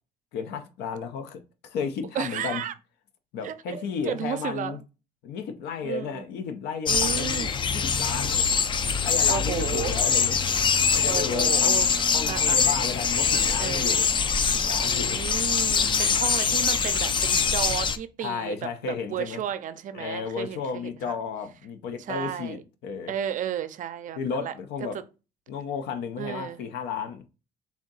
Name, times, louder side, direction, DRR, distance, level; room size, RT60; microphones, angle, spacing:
voice 1, 0.3-2.6 3.3-4.8 5.2-8.5 9.0-10.6 10.9-11.8 12.1-14.1 14.5-15.2 15.8-16.2 18.2-19.4 19.9-23.1 24.2-25.0 25.5-27.3, left 6 dB, 80° left, 0.6 m, -33 dB
voice 2, 2.1-2.7 3.4-4.8 5.8-6.2 6.9-7.5 9.3-9.9 11.1-11.9 12.3-12.6 13.6-14.0 14.8-21.2 22.1-22.6 23.1-24.5 24.9-25.0 26.2-26.6, right 9 dB, 50° right, 0.4 m, -33 dB
sound 1, 6.9-18.0, left 6 dB, 30° left, 0.4 m, -24 dB
3.5 x 2.6 x 3.9 m
cardioid pair, 110°, 17 cm